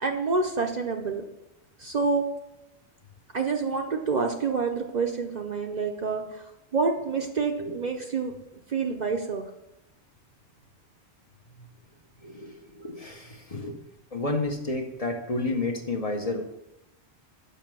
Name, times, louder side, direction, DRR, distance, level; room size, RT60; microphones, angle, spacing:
voice 1, 0.0-1.2 1.8-2.2 3.3-6.4 6.7-8.3 8.7-9.4, right 4 dB, 45° right, 3 dB, 0.6 m, -27 dB
voice 2, 12.2-13.7 14.1-16.4, left 2 dB, 35° left, 3 dB, 0.8 m, -31 dB
6.9 x 5.7 x 6.1 m, 0.91 s
omnidirectional pair, 1.1 m